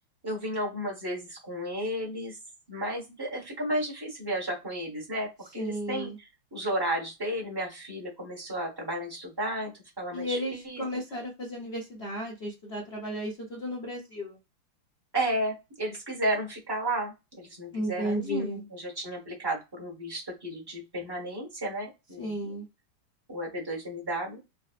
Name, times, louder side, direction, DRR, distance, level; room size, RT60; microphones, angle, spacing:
voice 1, 0.2-2.4 2.7-6.1 6.5-9.7 10.0-10.8 15.1-22.6 23.3-24.4, right 1 dB, 15° right, 0.8 m, -33 dB
voice 2, 5.6-6.2 10.1-14.4 17.7-18.6 22.2-22.7, equal, 55° left, 0.7 m, -34 dB
4.1 x 2.0 x 2.4 m
omnidirectional pair, 2.3 m